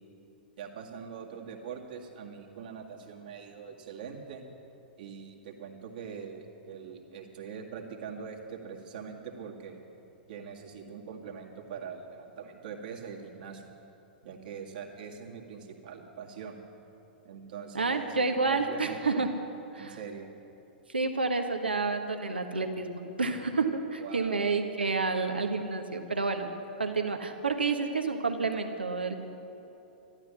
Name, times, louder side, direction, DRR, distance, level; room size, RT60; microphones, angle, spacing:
voice 1, 0.6-4.4 5.0-9.8 10.3-13.7 14.2-16.6 17.2-19.2 19.8-20.3 24.0-24.5, right 6 dB, 60° right, 0 dB, 2.0 m, -43 dB
voice 2, 17.7-19.3 19.7-20.0 20.9-26.5 26.8-29.1, right 4 dB, 80° right, 5 dB, 1.3 m, -29 dB
13.0 x 12.5 x 7.1 m, 2.9 s
figure-of-eight pair, 105°, 5 cm